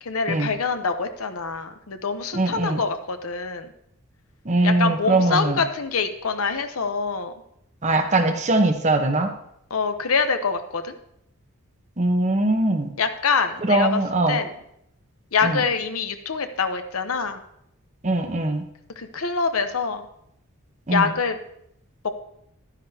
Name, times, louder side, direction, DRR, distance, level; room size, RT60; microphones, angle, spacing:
voice 1, 0.0-3.7 4.6-7.3 9.7-10.9 13.0-14.0 14.3-14.5 15.3-17.4 19.0-20.1 20.9-21.4 22.0-22.1, left 5 dB, 75° left, 8 dB, 0.8 m, -25 dB
voice 2, 2.3-2.8 4.4-5.6 7.8-9.3 12.0-12.9 13.6-14.4 15.4-15.6 18.0-18.6 20.9-21.1, right 2 dB, 30° right, 5 dB, 0.9 m, -21 dB
11.5 x 10.0 x 2.8 m, 0.76 s
head